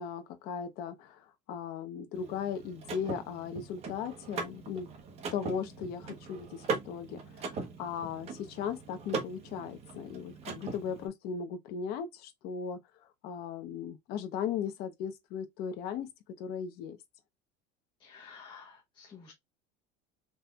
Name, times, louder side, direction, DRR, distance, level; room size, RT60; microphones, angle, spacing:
voice 1, 0.0-4.9 5.3-12.8 13.2-16.1 16.4-17.0, left 7 dB, 50° left, 0.8 m, -37 dB
Car / Mechanisms, 2.1-11.1, right 4 dB, 30° right, 1.0 m, -40 dB
voice 2, 18.0-19.3, left 6 dB, 25° left, 0.9 m, -51 dB
4.2 x 3.2 x 2.3 m
cardioid pair, 165°, 20 cm